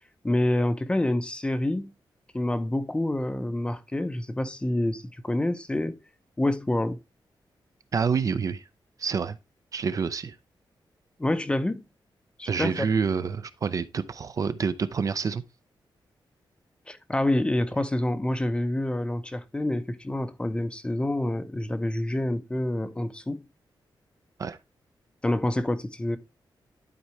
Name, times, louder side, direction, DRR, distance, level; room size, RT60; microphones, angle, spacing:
voice 1, 0.2-1.9 2.3-6.0 6.4-7.0 11.2-11.8 12.4-12.9 16.9-23.5 25.2-26.2, left 1 dB, 10° left, 0.6 m, -27 dB
voice 2, 7.9-8.6 9.0-9.4 9.7-10.3 12.4-15.4 24.4-24.6, right 5 dB, 45° right, 0.5 m, -27 dB
11.5 x 4.6 x 3.1 m
wide cardioid pair, 175°, 8 cm